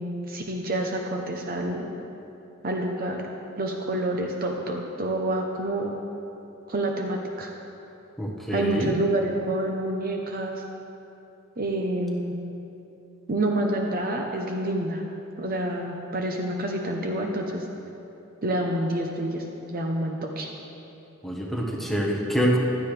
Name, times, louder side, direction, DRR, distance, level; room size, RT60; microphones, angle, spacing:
voice 1, 0.0-1.9 2.6-3.3 3.6-5.9 6.7-7.5 8.5-10.6 11.6-12.4 13.3-15.0 15.4-17.7 18.4-20.5, right 1 dB, 45° right, 2 dB, 0.8 m, -28 dB
voice 2, 8.2-8.9 21.2-22.6, equal, ahead, -3 dB, 1.2 m, -25 dB
15.5 x 11.5 x 3.4 m, 2.9 s
head